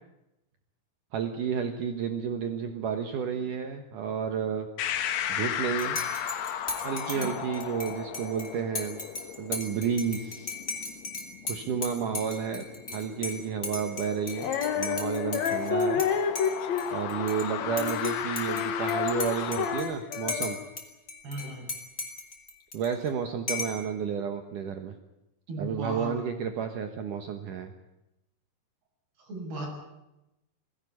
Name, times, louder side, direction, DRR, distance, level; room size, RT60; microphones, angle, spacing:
voice 1, 1.1-4.7 5.3-6.0 6.8-9.0 9.4-10.5 11.5-12.6 12.9-14.5 14.8-16.0 16.9-20.6 22.7-24.9 25.6-27.7, right 7 dB, 65° right, 6 dB, 2.5 m, -31 dB
sound 1, 4.8-19.8, left 9 dB, 90° left, 3.4 m, -36 dB
Dishes pots and pans / Cutlery silverware / Chink clink, 5.8-16.1 16.4-17.4 17.8-20.8 21.1-23.1 23.5-23.9, left 3 dB, 20° left, 3.0 m, -37 dB
voice 2, 7.1-7.4 21.2-21.7 25.5-26.1 29.2-29.7, right 1 dB, 85° right, -1 dB, 8.9 m, -36 dB
Female singing, 14.4-20.8, left 7 dB, 55° left, 2.4 m, -30 dB
22.0 x 16.5 x 9.9 m, 0.92 s
omnidirectional pair, 4.5 m